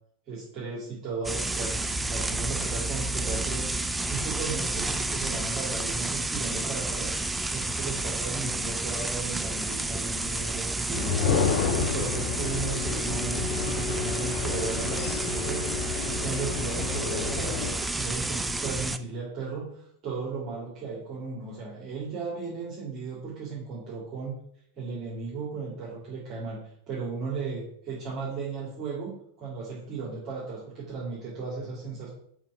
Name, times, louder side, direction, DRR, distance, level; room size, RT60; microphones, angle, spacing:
voice 1, 0.3-7.1 7.5-11.3 11.7-15.7 16.0-24.3 24.8-26.6 26.9-32.1, right 4 dB, 30° right, -6 dB, 2.6 m, -36 dB
sound 1, 1.2-19.0, right 2 dB, 10° right, 0.5 m, -30 dB
sound 2, 10.9-17.7, left 6 dB, 50° left, 1.2 m, -30 dB
7.3 x 4.6 x 5.7 m, 0.68 s
figure-of-eight pair, 90°, 0 cm